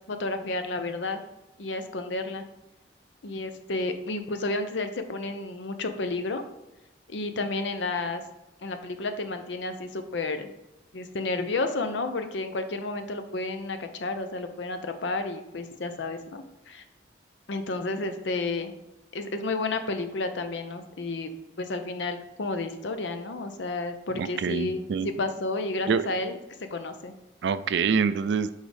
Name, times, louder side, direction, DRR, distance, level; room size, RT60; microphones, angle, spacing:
voice 1, 0.1-1.2 1.6-2.4 3.2-6.4 7.1-8.2 8.6-10.5 10.9-16.8 17.5-18.7 19.1-21.3 21.6-24.9 25.2-26.4 26.7-27.1, left 2 dB, 75° left, 8 dB, 0.6 m, -31 dB
voice 2, 24.2-25.1 25.9-26.0 27.4-28.5, right 6 dB, 70° right, 13 dB, 0.3 m, -26 dB
6.4 x 4.7 x 3.4 m, 0.97 s
head